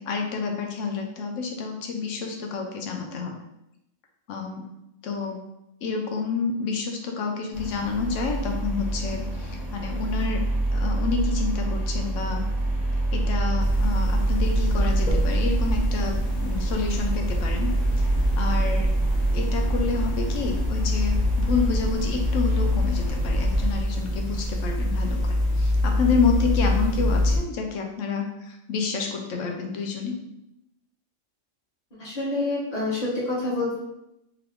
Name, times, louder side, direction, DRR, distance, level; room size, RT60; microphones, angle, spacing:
voice 1, 0.0-3.4 4.3-4.7 5.0-5.4 5.8-10.4 10.7-12.4 13.1-18.9 19.3-30.2, left 5 dB, 70° left, 2 dB, 0.9 m, -29 dB
sound 1, 7.5-23.7, right 2 dB, ahead, 0.4 m, -26 dB
sound 2, 13.6-27.4, left 2 dB, 50° left, 0.5 m, -26 dB
voice 2, 32.0-33.8, left 2 dB, 35° left, -6 dB, 0.9 m, -27 dB
2.8 x 2.4 x 3.4 m, 0.85 s
omnidirectional pair, 1.4 m